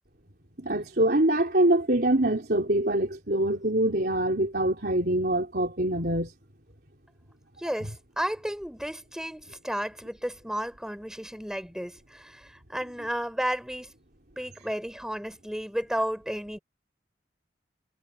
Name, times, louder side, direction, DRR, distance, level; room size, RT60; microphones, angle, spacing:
voice 1, 0.6-6.3, right 1 dB, 55° right, 4.1 m, -24 dB
voice 2, 7.6-13.9 14.4-16.6, equal, 5° right, 4.1 m, -33 dB
head